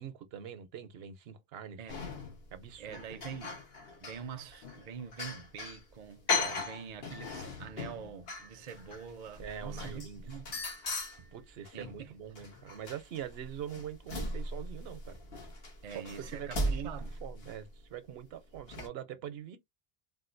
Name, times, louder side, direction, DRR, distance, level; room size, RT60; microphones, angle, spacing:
voice 1, 0.0-1.8 2.5-3.0 6.3-6.7 9.4-10.3 11.3-15.2 15.9-16.9 17.2-19.6, right 9 dB, 80° right, 0.8 m, -43 dB
sound 1, 1.9-2.5 2.9-5.8 6.3-12.0 12.4-17.6 18.5-18.9, left 2 dB, 75° left, 1.3 m, -38 dB
voice 2, 2.8-3.6 4.0-10.6 11.2-11.3 11.7-12.1 15.8-17.1, right 7 dB, 50° right, 0.5 m, -45 dB
3.5 x 2.4 x 2.5 m
omnidirectional pair, 1.0 m